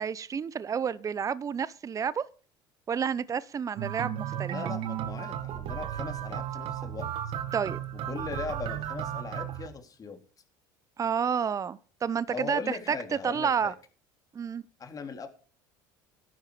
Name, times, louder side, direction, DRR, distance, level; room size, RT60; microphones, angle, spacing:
voice 1, 0.0-2.2 2.9-4.5 7.5-7.8 11.0-13.0 13.2-13.7 14.3-14.6, right 7 dB, 30° right, 0.7 m, -30 dB
sound 1, 3.8-9.7, right 10 dB, 55° right, 1.8 m, -34 dB
voice 2, 4.5-7.1 8.0-10.2 12.3-13.7 14.8-15.3, left 5 dB, 35° left, 3.6 m, -39 dB
15.0 x 11.5 x 5.0 m
hypercardioid pair, 80°, 11 cm